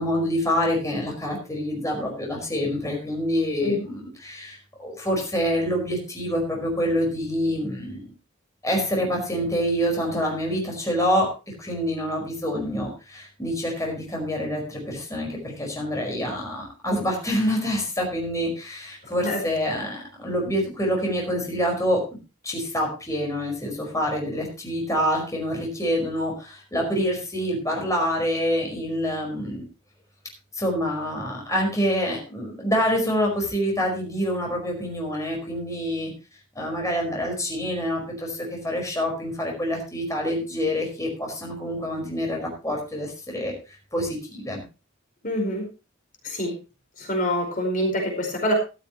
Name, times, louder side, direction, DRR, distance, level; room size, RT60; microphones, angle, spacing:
voice 1, 0.0-8.1 8.6-22.0 22.4-29.6 30.5-36.1 36.5-43.5 43.9-44.6, equal, 15° left, 0 dB, 5.0 m, -26 dB
voice 2, 45.2-45.6 46.2-46.6 47.0-48.5, left 1 dB, 40° left, 1 dB, 4.6 m, -25 dB
14.0 x 13.5 x 3.0 m, 0.30 s
head